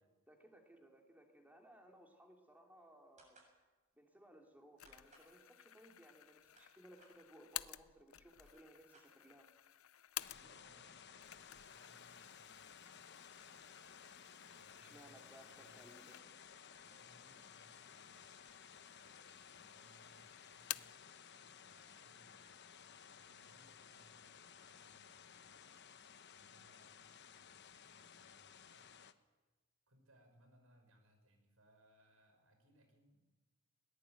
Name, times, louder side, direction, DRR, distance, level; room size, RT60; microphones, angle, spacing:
voice 1, 0.3-3.4 3.9-9.5 14.7-16.3, right 1 dB, 10° right, 2 dB, 3.1 m, -62 dB
sound 1, 3.2-3.5 4.8-5.3 6.2-7.1 8.0-8.1 8.3-9.5, right 2 dB, 35° right, 7.1 m, -67 dB
sound 2, 4.8-10.8 11.1-16.6 17.0-17.1 17.9-18.6 18.9-19.7 20.0-21.1, left 14 dB, 80° left, 0.6 m, -52 dB
sound 3, 10.2-29.1, left 7 dB, 55° left, 1.1 m, -58 dB
voice 2, 10.3-12.7 14.5-15.9 16.7-26.0 26.3-29.3 29.9-33.3, right 1 dB, 80° right, 6 dB, 5.8 m, -71 dB
21.0 x 19.0 x 9.2 m, 1.2 s
head